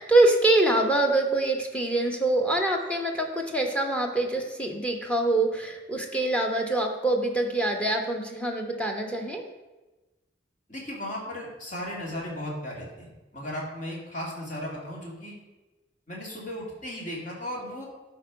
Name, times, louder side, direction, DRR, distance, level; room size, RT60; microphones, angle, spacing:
voice 1, 0.0-9.4, right 2 dB, 5° left, 3 dB, 1.1 m, -24 dB
voice 2, 10.7-15.3 16.1-17.9, left 1 dB, 45° left, -2 dB, 2.5 m, -36 dB
12.0 x 4.6 x 5.2 m, 1.1 s
head